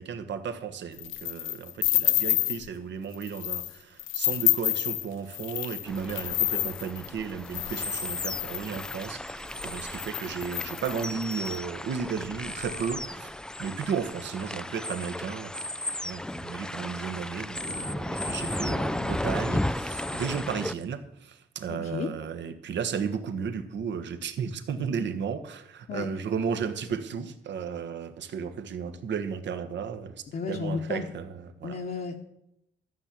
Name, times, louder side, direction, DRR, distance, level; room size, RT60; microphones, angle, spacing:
voice 1, 0.0-15.5 16.0-30.1 30.5-31.8, right 6 dB, 65° right, 9 dB, 1.3 m, -34 dB
sound 1, 1.0-2.7 3.1-3.7 4.0-9.0 9.6-9.7 9.9-11.5, left 16 dB, 80° left, 0.4 m, -29 dB
sound 2, 5.9-20.7, left 1 dB, 5° left, 0.3 m, -34 dB
voice 2, 21.7-22.1 25.9-26.1 30.3-31.1 31.6-32.2, left 5 dB, 50° left, 0 dB, 1.2 m, -33 dB
13.0 x 6.0 x 8.4 m, 0.81 s
cardioid pair, 90°, 20 cm